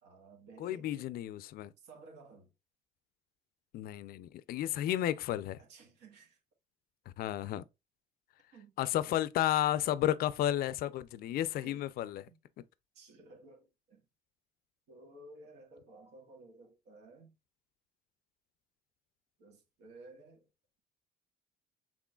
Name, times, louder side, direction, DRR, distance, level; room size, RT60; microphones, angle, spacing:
voice 1, 0.0-1.1 1.8-2.5 5.6-6.4 8.5-9.2 11.6-11.9 12.3-12.4 12.9-14.0 14.9-17.3 19.4-20.5, right 2 dB, 85° right, 1.7 m, -55 dB
voice 2, 0.6-1.7 3.7-5.6 7.2-7.6 8.8-12.2, left 12 dB, 65° left, 0.4 m, -32 dB
6.0 x 3.6 x 2.3 m
cardioid pair, 110°, 17 cm